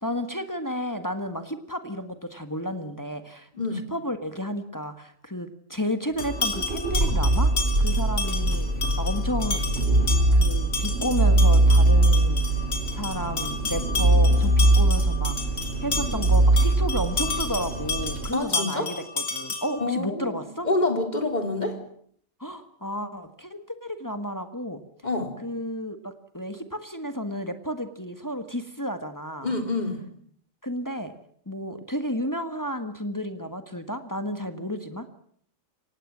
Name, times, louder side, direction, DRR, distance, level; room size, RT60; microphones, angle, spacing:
voice 1, 0.0-3.5 3.9-7.5 7.8-8.7 9.0-9.6 10.3-12.4 12.9-15.4 15.8-20.7 22.4-24.8 25.4-29.5 30.6-31.1 31.4-35.1, equal, 15° left, 8 dB, 1.6 m, -32 dB
voice 2, 3.5-3.9 18.3-18.9 19.8-21.8 25.0-25.3 29.4-30.0, left 2 dB, 35° left, 5 dB, 3.6 m, -27 dB
sound 1, 6.2-19.9, left 4 dB, 90° left, 3.8 m, -32 dB
sound 2, 6.2-18.3, right 2 dB, 55° right, 3.7 m, -22 dB
24.0 x 19.0 x 7.5 m, 0.62 s
omnidirectional pair, 1.3 m